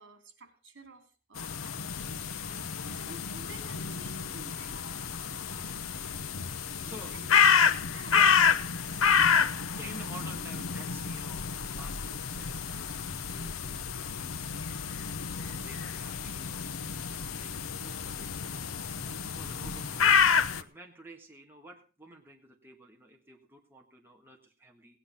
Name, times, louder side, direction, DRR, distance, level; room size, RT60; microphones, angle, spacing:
voice 1, 0.0-4.8 5.3-5.6 6.8-8.5 8.8-9.3, right 2 dB, 60° right, 7 dB, 3.3 m, -52 dB
sound 1, 1.4-20.6, left 6 dB, 85° left, 0.8 m, -29 dB
voice 2, 5.2-5.8 6.6-7.2 8.1-8.3 9.7-14.8 15.2-18.7 19.1-20.1 20.6-25.0, right 2 dB, 10° right, 1 dB, 1.7 m, -51 dB
17.0 x 10.0 x 5.6 m, 0.37 s
head